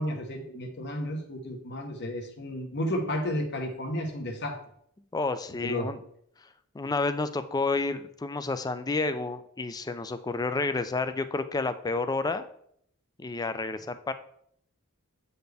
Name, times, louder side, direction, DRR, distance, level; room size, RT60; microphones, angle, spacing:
voice 1, 0.0-4.6 5.6-5.9, left 1 dB, 55° left, 4 dB, 1.1 m, -32 dB
voice 2, 5.1-6.0 6.7-12.5 13.2-14.1, left 3 dB, 20° left, 11 dB, 0.3 m, -30 dB
8.0 x 4.3 x 3.4 m, 0.68 s
head